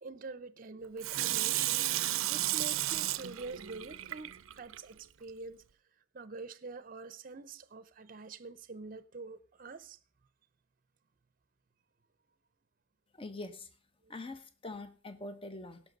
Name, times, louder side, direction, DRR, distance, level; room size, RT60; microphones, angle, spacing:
voice 1, 0.0-1.8 2.3-5.6 6.1-10.0, right 3 dB, 40° right, 0.6 m, -45 dB
Water tap faucet / Sink (filling or washing), 1.0-4.8 5.3-5.4, right 15 dB, 85° right, 0.5 m, -33 dB
voice 2, 13.1-13.7 14.1-15.8, left 2 dB, 25° left, 0.9 m, -44 dB
17.5 x 5.9 x 5.3 m
head